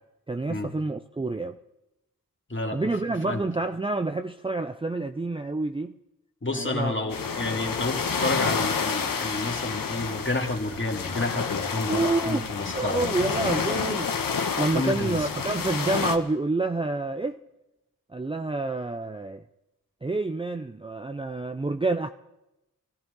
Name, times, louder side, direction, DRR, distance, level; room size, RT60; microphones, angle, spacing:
voice 1, 0.3-1.6 2.7-6.0 6.5-7.1 11.9-12.5 12.7-14.1 14.6-17.4 18.1-19.4 20.0-22.1, right 3 dB, 15° right, 0.5 m, -28 dB
voice 2, 2.5-3.4 6.4-13.0 14.7-15.3, left 2 dB, 35° left, 2.8 m, -30 dB
sound 1, 7.1-16.2, left 5 dB, 70° left, 1.2 m, -29 dB
21.5 x 14.0 x 3.8 m
cardioid pair, 40°, 35 cm